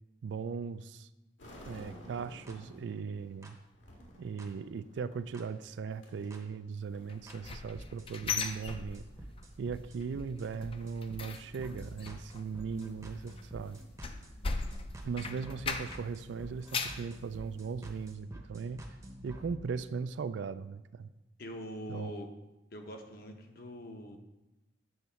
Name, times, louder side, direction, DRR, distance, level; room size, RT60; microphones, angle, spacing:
voice 1, 0.2-1.1 1.7-3.6 4.2-9.0 9.6-13.8 15.0-18.8 19.2-21.1 21.9-22.2, right 5 dB, 65° right, 13 dB, 0.3 m, -38 dB
sound 1, 1.4-16.7, equal, 75° left, 1.7 m, -57 dB
sound 2, 2.5-2.6 3.4-3.5 4.4-4.5 5.3-5.4 6.3-6.4 7.3-7.4 7.7-19.5, right 1 dB, 15° right, 0.7 m, -49 dB
sound 3, 7.1-9.4 9.7-10.1 10.4-16.2 16.5-17.1 17.6-17.7 18.1-18.2, left 4 dB, 30° left, 0.4 m, -38 dB
voice 2, 21.4-22.3 22.7-24.2, equal, 50° left, 4 dB, 0.8 m, -43 dB
8.0 x 4.0 x 5.7 m, 0.99 s
head